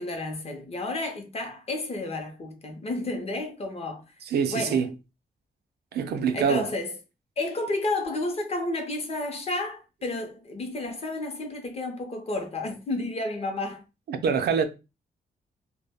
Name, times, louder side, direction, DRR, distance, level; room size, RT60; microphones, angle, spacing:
voice 1, 0.0-4.2 4.5-4.9 6.3-7.0 7.4-13.8 14.5-14.6, left 2 dB, 40° left, 0.6 m, -31 dB
voice 2, 4.3-4.9 5.9-6.7 14.1-14.6, right 6 dB, 75° right, 0.4 m, -24 dB
2.1 x 2.1 x 3.4 m
wide cardioid pair, 155°, 17 cm